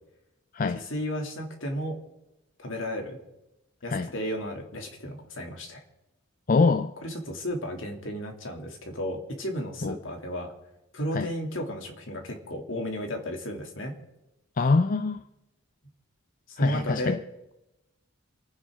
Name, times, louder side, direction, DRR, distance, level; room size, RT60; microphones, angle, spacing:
voice 1, 0.7-2.0 2.6-3.2 3.8-5.8 7.0-10.5 10.9-13.9 16.5-17.2, equal, 65° left, 2.6 m, -34 dB
voice 2, 6.5-6.9 9.8-9.9 11.1-11.3 14.6-15.2 16.6-17.2, left 3 dB, 40° left, 0.5 m, -23 dB
28.5 x 9.6 x 3.7 m
head